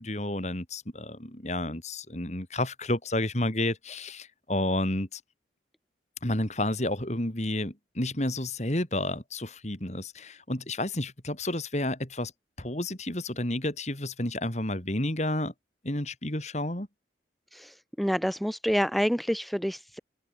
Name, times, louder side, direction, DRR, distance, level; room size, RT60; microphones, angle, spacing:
voice 1, 0.0-5.2 6.2-12.3 12.6-15.5 15.8-16.9, left 1 dB, 40° left, 3.4 m, -31 dB
voice 2, 17.5-20.0, equal, ahead, 1.6 m, -28 dB
open air
head